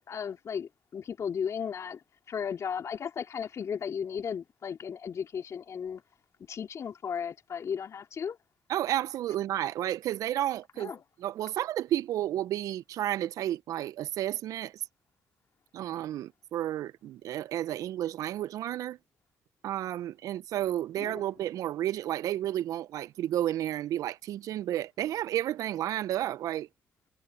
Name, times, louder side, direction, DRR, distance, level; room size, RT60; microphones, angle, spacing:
voice 1, 0.0-2.0 2.3-6.0 6.5-8.4 10.8-11.0 21.0-21.2, left 7 dB, 50° left, 2.8 m, -35 dB
voice 2, 8.7-10.9 11.2-14.7 15.7-19.0 19.6-26.7, right 12 dB, 65° right, 1.3 m, -31 dB
hypercardioid pair, 40°, 6 cm